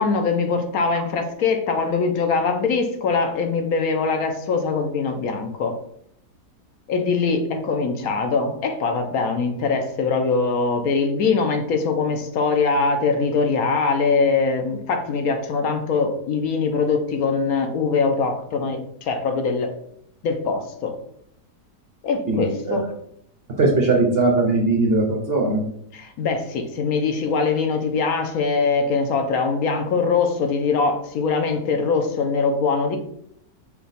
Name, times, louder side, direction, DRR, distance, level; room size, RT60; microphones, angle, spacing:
voice 1, 0.0-5.8 6.9-19.7 20.2-21.0 22.0-22.9 25.9-33.0, left 4 dB, 65° left, 1.0 m, -22 dB
voice 2, 22.3-22.8 23.6-25.6, right 2 dB, 55° right, 0.6 m, -19 dB
5.7 x 2.3 x 4.0 m
omnidirectional pair, 1.8 m